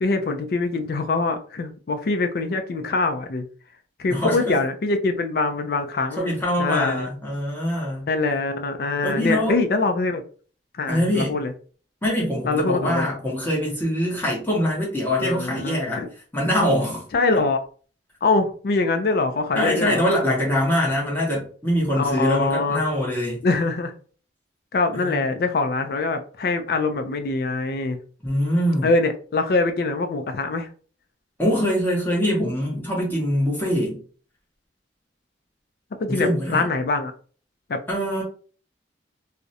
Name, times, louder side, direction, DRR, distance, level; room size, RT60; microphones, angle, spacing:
voice 1, 0.0-3.5 4.0-7.1 8.1-10.2 10.8-11.5 12.4-13.1 15.2-16.1 17.1-17.6 18.2-20.0 22.0-22.8 23.4-23.9 24.7-28.0 28.8-30.7 36.0-37.1 37.7-37.8, left 3 dB, 55° left, 7 dB, 0.4 m, -23 dB
voice 2, 4.1-4.6 6.2-8.1 9.0-9.6 10.9-11.3 12.0-16.0 16.3-17.1 19.5-23.4 24.9-25.2 28.2-28.9 31.4-34.0 36.1-36.7 37.9-38.2, equal, 10° left, -4 dB, 0.8 m, -23 dB
2.4 x 2.0 x 2.7 m, 0.41 s
head